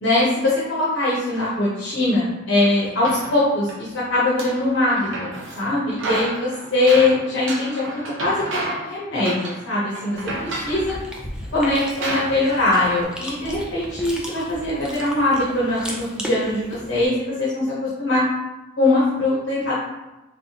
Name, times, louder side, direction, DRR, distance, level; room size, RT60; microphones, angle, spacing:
voice 1, 0.0-5.3 5.5-11.0 11.5-18.2 18.8-19.7, left 2 dB, 60° left, -8 dB, 0.8 m, -21 dB
sound 1, 2.6-3.8 4.1-5.6 5.9-8.9 9.2-9.7 9.9-11.0 11.6-11.7 12.0-13.0, right 2 dB, 70° right, 0.7 m, -31 dB
Chewing mastication, 10.1-17.1, equal, 5° right, 0.4 m, -36 dB
3.5 x 3.3 x 2.8 m, 1.0 s
head